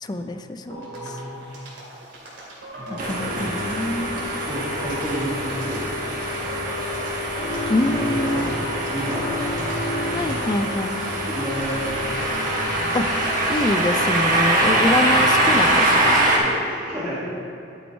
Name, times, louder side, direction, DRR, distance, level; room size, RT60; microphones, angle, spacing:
voice 1, 0.0-0.9 3.0-4.3 7.7-8.5 10.1-11.1 12.9-13.1 13.5-16.3, left 2 dB, 20° left, 8 dB, 0.4 m, -25 dB
voice 2, 0.7-1.7 2.8-4.1 4.4-5.8 6.1-6.9 7.9-9.7 10.0-10.2 11.0-12.3 14.6-15.0 16.2-17.2, right 1 dB, 15° right, -11 dB, 1.7 m, -33 dB
sound 1, 0.7-16.1, right 1 dB, 85° right, 2.3 m, -40 dB
sound 2, 3.0-16.4, right 1 dB, 45° right, 1.3 m, -23 dB
sound 3, 7.3-8.7 9.0-10.6, left 1 dB, 55° left, 1.7 m, -30 dB
11.0 x 5.4 x 4.5 m, 2.6 s
head